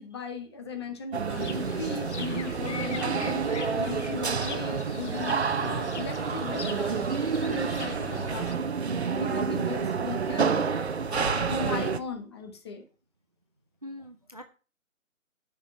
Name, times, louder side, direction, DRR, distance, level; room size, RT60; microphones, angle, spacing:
voice 1, 0.0-8.7 9.1-10.7 11.1-12.9, left 4 dB, 20° left, 5 dB, 1.2 m, -37 dB
sound 1, 1.1-12.0, right 5 dB, 50° right, 1.0 m, -29 dB
sound 2, 1.3-8.5, left 6 dB, 55° left, 0.9 m, -41 dB
voice 2, 4.4-4.8 7.5-7.8 13.8-14.4, left 1 dB, 30° right, 7 dB, 0.5 m, -45 dB
9.9 x 6.4 x 6.0 m, 0.36 s
figure-of-eight pair, 160°, 41 cm